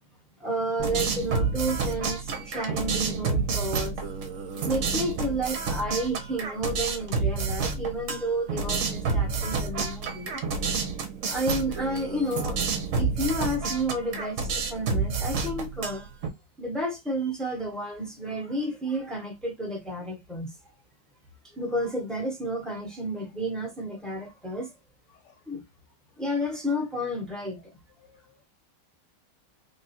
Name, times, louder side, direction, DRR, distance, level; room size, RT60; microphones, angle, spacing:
voice 1, 0.4-3.9 4.5-10.4 11.3-12.6 12.9-16.1 16.6-20.5 21.5-24.7 25.5-25.6 26.2-27.7, right 1 dB, ahead, 0.9 m, -31 dB
sound 1, 0.8-16.3, right 4 dB, 55° right, 1.0 m, -29 dB
voice 2, 25.1-25.4 27.5-27.7 28.0-28.4, left 7 dB, 75° left, 1.6 m, -61 dB
3.5 x 2.3 x 4.2 m
omnidirectional pair, 1.9 m